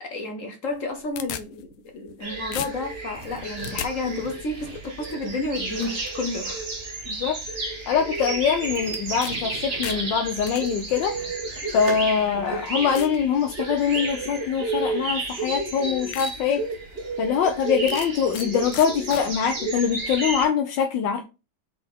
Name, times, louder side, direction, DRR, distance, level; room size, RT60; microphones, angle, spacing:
voice 1, 0.0-1.7 1.9-6.7, left 2 dB, 50° left, 1.0 m, -31 dB
sound 1, 0.7-2.2 2.5-3.9 8.9-9.3 9.6-10.6 11.5-11.6 12.2-12.3 13.0-13.2 13.7-14.0 15.2-15.3 15.7-15.8 16.1-16.3 16.8-16.9 17.9-18.5 18.7-19.2, left 11 dB, 90° left, 1.4 m, -36 dB
sound 2, 2.2-20.4, right 2 dB, 35° right, 1.2 m, -31 dB
sound 3, 3.1-12.5, right 3 dB, 50° right, 1.9 m, -44 dB
voice 2, 7.1-7.4 7.9-11.1 11.7-16.6 17.2-21.2, left 7 dB, 70° left, 1.2 m, -23 dB
4.7 x 3.9 x 5.2 m
omnidirectional pair, 2.3 m